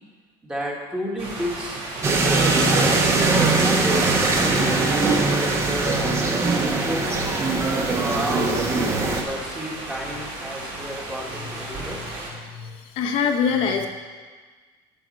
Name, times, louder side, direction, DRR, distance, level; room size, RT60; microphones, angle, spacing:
voice 1, 0.4-1.8 2.8-7.2 7.8-12.0 13.2-13.3, equal, 5° right, -2 dB, 1.5 m, -32 dB
sound 1, 1.2-12.3, right 2 dB, 50° right, 3.4 m, -35 dB
sound 2, 2.0-9.2, right 3 dB, 25° right, 1.1 m, -21 dB
voice 2, 12.4-13.9, left 6 dB, 55° left, 3 dB, 1.0 m, -24 dB
9.2 x 6.5 x 7.5 m, 1.5 s
cardioid pair, 160°, 11 cm